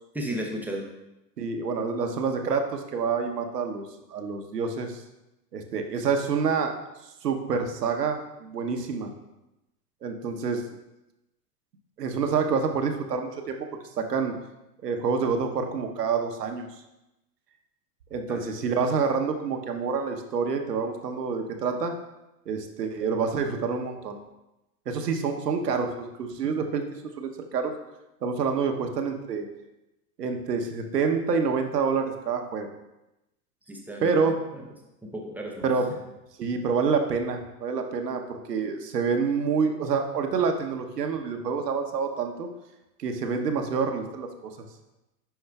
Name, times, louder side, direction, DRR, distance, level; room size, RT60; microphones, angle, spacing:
voice 1, 0.1-0.9 18.3-18.4 33.7-34.3 35.0-35.7, equal, 5° right, -1 dB, 0.7 m, -34 dB
voice 2, 1.4-5.0 5.5-6.7 7.2-9.1 10.0-10.6 12.0-13.7 14.0-14.3 14.8-16.7 18.1-21.9 22.5-24.2 24.9-26.8 27.1-27.7 28.2-29.5 30.2-32.7 34.0-34.4 35.6-35.9 36.4-42.5 43.0-44.5, right 5 dB, 80° right, 5 dB, 1.0 m, -27 dB
10.0 x 4.7 x 2.3 m, 0.94 s
hypercardioid pair, 105°, 48 cm